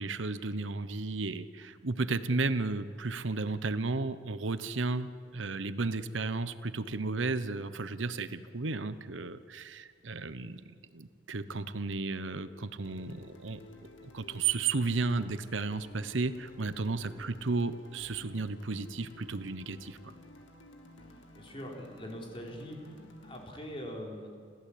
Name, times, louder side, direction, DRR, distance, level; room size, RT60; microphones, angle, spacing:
voice 1, 0.0-10.6 10.9-13.6 14.0-20.1, right 3 dB, 90° right, 13 dB, 1.0 m, -33 dB
sound 1, 12.8-23.5, left 2 dB, 85° left, 2.2 m, -54 dB
voice 2, 21.3-24.4, equal, 30° left, 0 dB, 3.9 m, -42 dB
29.5 x 14.5 x 8.7 m, 2.2 s
head